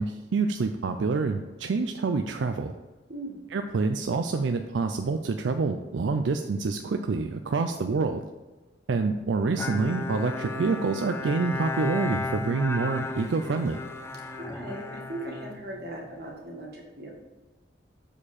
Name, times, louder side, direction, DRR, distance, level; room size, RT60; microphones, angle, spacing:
voice 1, 0.0-2.7 3.5-8.3 8.9-13.8, right 4 dB, 90° right, 6 dB, 0.4 m, -27 dB
Bowed string instrument, 9.6-16.2, left 3 dB, 15° left, 0.5 m, -34 dB
voice 2, 14.4-17.1, right 1 dB, 60° right, -1 dB, 1.8 m, -39 dB
6.7 x 4.9 x 4.2 m, 1.2 s
head